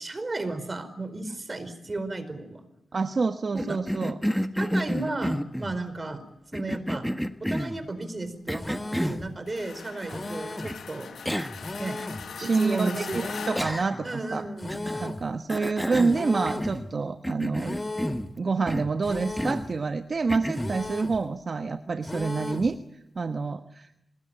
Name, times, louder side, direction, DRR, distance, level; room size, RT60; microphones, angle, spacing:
voice 1, 0.0-2.7 3.5-3.8 4.5-6.2 6.5-7.1 7.4-11.1 11.8-12.0 12.4-13.2 14.0-14.8, right 2 dB, 35° right, 11 dB, 4.7 m, -34 dB
voice 2, 2.9-4.2 10.0-10.2 12.4-14.5 15.0-17.8 18.4-22.8 23.1-24.0, right 4 dB, 50° right, 8 dB, 1.2 m, -27 dB
Cough, 3.6-5.8 6.5-7.8 8.5-9.3 10.6-10.8 11.2-11.6 12.0-12.1 13.5-14.1 14.7-15.1 15.5-16.9 17.2-18.3 18.7-19.0 19.4-19.7 20.3-20.8, equal, ahead, 1.3 m, -30 dB
sound 1, 8.6-9.3 10.1-10.8 11.6-12.3 13.1-13.8 14.6-15.3 16.1-16.8 17.6-18.3 19.0-19.7 20.5-21.2 22.0-22.7, left 2 dB, 25° left, 2.4 m, -36 dB
sound 2, 9.5-14.7, left 6 dB, 85° left, 1.4 m, -41 dB
27.0 x 20.5 x 9.0 m, 0.81 s
cardioid pair, 80°, 0 cm